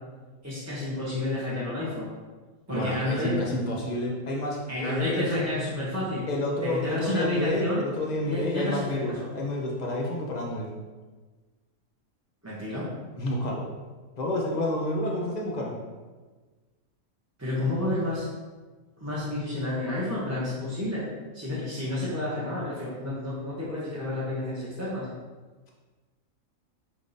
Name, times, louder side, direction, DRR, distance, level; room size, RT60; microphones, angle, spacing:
voice 1, 0.4-2.1 2.7-3.4 4.7-6.3 6.6-7.8 8.3-9.3 12.4-12.9 17.4-18.3 19.0-21.0 21.3-25.1, left 1 dB, 15° right, -9 dB, 0.7 m, -30 dB
voice 2, 2.7-5.4 6.3-10.7 13.2-13.7 14.2-15.7, left 1 dB, 45° left, -1 dB, 0.6 m, -29 dB
5.0 x 3.6 x 2.6 m, 1.4 s
omnidirectional pair, 1.4 m